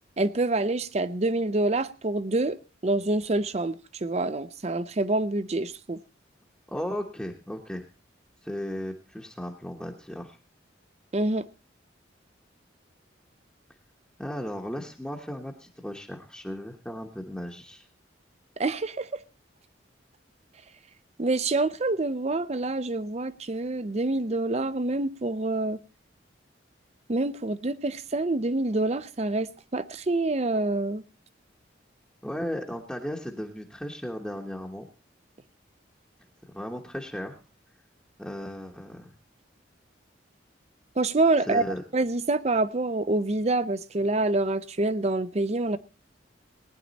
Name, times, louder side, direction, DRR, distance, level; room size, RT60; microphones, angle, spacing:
voice 1, 0.2-2.6 2.8-3.8 4.0-6.0 11.1-11.4 18.6-19.2 21.2-25.8 27.1-31.0 41.0-41.6 41.9-45.8, right 2 dB, 35° right, 0.6 m, -26 dB
voice 2, 6.7-7.8 8.4-10.4 14.2-17.9 32.2-34.9 36.5-37.4 38.2-39.1 41.5-41.8, equal, 5° left, 1.1 m, -35 dB
18.5 x 10.0 x 4.1 m
head